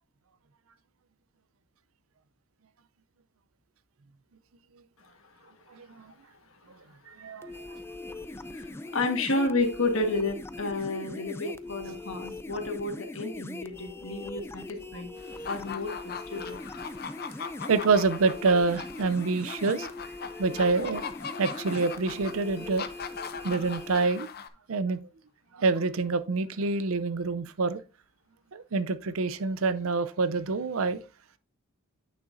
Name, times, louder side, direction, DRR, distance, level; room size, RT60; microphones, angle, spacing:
voice 1, 5.0-5.5 7.0-7.1 7.9-8.2 8.4-15.1 15.4-16.6, left 2 dB, 65° left, 1.5 m, -31 dB
voice 2, 5.7-6.1 6.7-6.8 7.1-7.8 17.7-19.9 20.4-21.1 21.4-22.9 23.4-24.3 24.7-25.0 25.5-27.8 28.5-31.0, right 4 dB, 70° right, 0.6 m, -27 dB
sound 1, 7.4-24.1, left 2 dB, 10° left, 0.3 m, -41 dB
sound 2, 15.2-24.5, left 6 dB, 45° left, 0.6 m, -40 dB
8.7 x 6.3 x 2.6 m
head